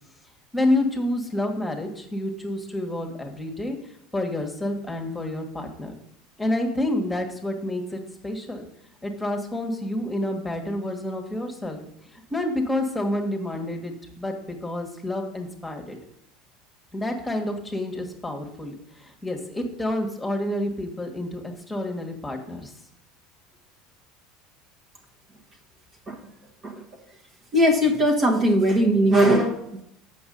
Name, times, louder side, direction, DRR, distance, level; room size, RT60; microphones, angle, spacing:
voice 1, 0.5-3.8 4.1-5.9 6.4-8.7 9.0-11.8 12.1-16.0 16.9-22.7, left 1 dB, 10° left, 2 dB, 1.6 m, -29 dB
voice 2, 27.5-29.8, equal, 30° right, 1 dB, 1.4 m, -20 dB
7.9 x 5.9 x 5.3 m, 0.81 s
figure-of-eight pair, 70°, 0 cm